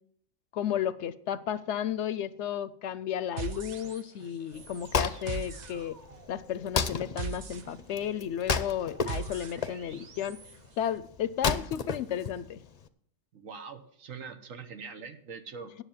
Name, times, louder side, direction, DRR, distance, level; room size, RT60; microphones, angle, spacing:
voice 1, 0.5-6.0 6.3-10.4 10.8-12.6, left 9 dB, 70° left, 15 dB, 0.8 m, -33 dB
sound 1, 3.4-10.6, right 5 dB, 45° right, 0.6 m, -41 dB
Wood, 4.5-12.9, left 5 dB, 40° left, 0.6 m, -33 dB
voice 2, 13.3-15.8, right 5 dB, 85° right, 8 dB, 1.5 m, -43 dB
9.9 x 7.1 x 7.2 m, 0.66 s
omnidirectional pair, 1.3 m